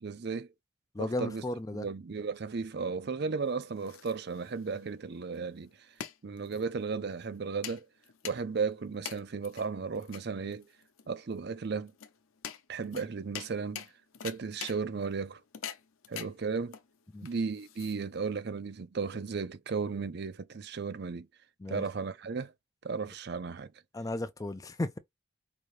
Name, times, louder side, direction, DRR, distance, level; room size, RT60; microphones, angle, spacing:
voice 1, 0.0-0.5 1.0-1.4 1.7-5.7 6.2-7.9 8.2-10.7 11.1-11.9 12.7-13.8 14.2-15.4 16.1-16.7 17.2-21.3 21.7-22.5 22.8-23.7, right 5 dB, 50° right, 0.5 m, -35 dB
voice 2, 0.9-1.9 17.1-17.3 21.6-21.8 23.9-25.0, left 2 dB, 15° left, 0.4 m, -34 dB
sound 1, 3.4-18.4, left 9 dB, 85° left, 0.7 m, -46 dB
5.0 x 2.7 x 3.2 m
head